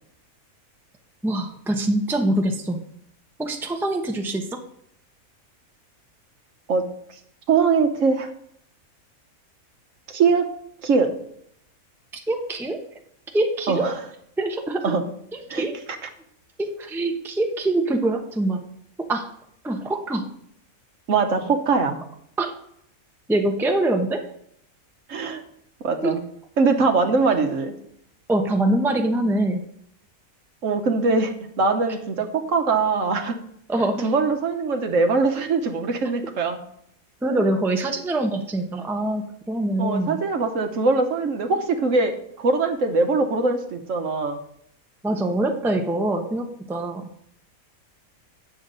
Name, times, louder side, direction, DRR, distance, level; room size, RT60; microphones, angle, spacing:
voice 1, 1.2-2.8 3.4-4.6 12.1-12.8 13.3-13.9 14.4-15.0 15.3-15.8 16.6-18.6 19.1-19.3 19.6-20.2 22.4-22.5 23.3-24.2 26.0-26.2 28.3-29.6 33.7-34.1 37.2-40.2 45.0-47.0, right 1 dB, ahead, 3 dB, 0.7 m, -24 dB
voice 2, 7.5-8.3 10.1-10.4 10.8-11.1 13.7-14.0 14.8-15.0 15.5-15.6 21.1-22.0 25.1-25.4 25.8-26.2 26.6-27.8 30.6-33.4 34.0-36.6 39.8-42.1 42.4-44.4, right 4 dB, 65° right, 6 dB, 1.3 m, -22 dB
9.4 x 7.0 x 3.9 m, 0.70 s
omnidirectional pair, 1.5 m